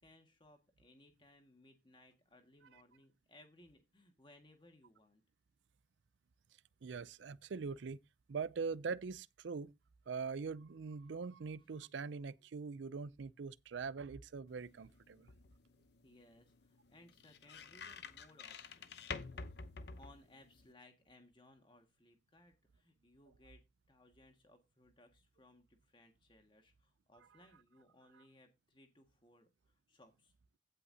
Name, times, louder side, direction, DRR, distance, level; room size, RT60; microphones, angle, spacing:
voice 1, 0.0-5.2 16.0-23.6 23.9-30.3, left 1 dB, 25° left, 1.7 m, -64 dB
voice 2, 6.8-8.0 8.3-9.7 10.1-15.3, right 5 dB, 75° right, 0.4 m, -42 dB
sound 1, 14.5-20.7, left 4 dB, 60° left, 0.8 m, -50 dB
16.0 x 5.6 x 2.8 m
head